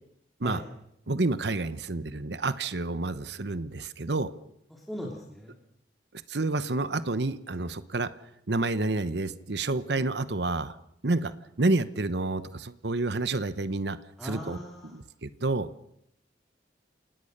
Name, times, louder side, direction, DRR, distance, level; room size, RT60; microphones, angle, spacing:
voice 1, 1.1-4.3 6.3-8.1 8.5-10.8 11.0-11.3 11.6-14.0 14.2-14.6 14.9-15.7, right 2 dB, 65° right, 14 dB, 1.0 m, -29 dB
voice 2, 4.7-5.5 14.2-15.0, equal, ahead, -2 dB, 3.2 m, -38 dB
29.0 x 18.5 x 6.7 m, 0.76 s
head